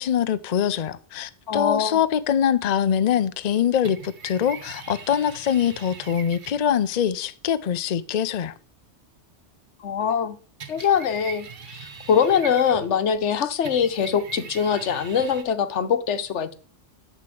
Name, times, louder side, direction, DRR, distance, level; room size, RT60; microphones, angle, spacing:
voice 1, 0.0-8.5, left 9 dB, 50° left, 0.6 m, -23 dB
voice 2, 1.5-2.0 9.8-10.4 10.7-11.5 11.7-16.5, left 7 dB, 85° left, 1.2 m, -23 dB
sound 1, 3.8-6.7 10.6-13.0 13.6-15.4, right 5 dB, 50° right, 1.0 m, -41 dB
11.0 x 4.2 x 7.7 m
omnidirectional pair, 1.2 m